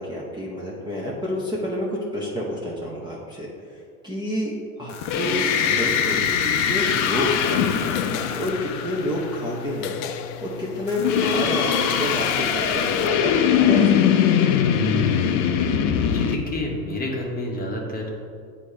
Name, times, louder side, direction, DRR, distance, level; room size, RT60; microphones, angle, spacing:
voice 1, 0.0-1.9 2.1-3.5 3.7-9.9 10.4-14.2, equal, 10° right, -5 dB, 0.7 m, -29 dB
sound 1, 4.9-9.4 10.9-16.4, left 8 dB, 40° left, 0.5 m, -21 dB
sound 2, 6.9-11.9, left 9 dB, 90° left, 0.6 m, -36 dB
voice 2, 16.1-18.1, left 1 dB, 20° left, -1 dB, 1.0 m, -29 dB
8.3 x 2.8 x 4.8 m, 2.3 s
supercardioid pair, 115°, 46 cm